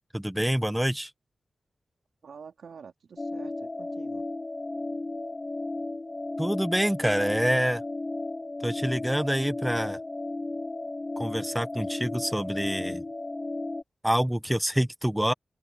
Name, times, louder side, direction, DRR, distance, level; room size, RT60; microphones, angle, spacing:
voice 1, 0.1-1.1 6.4-7.8 8.6-10.0 11.2-13.0 14.0-15.3, equal, 5° right, 1.1 m, -26 dB
voice 2, 2.2-4.2, right 6 dB, 80° right, 3.2 m, -47 dB
sound 1, 3.2-13.8, left 2 dB, 25° left, 0.6 m, -34 dB
open air
wide cardioid pair, 100°, 0 cm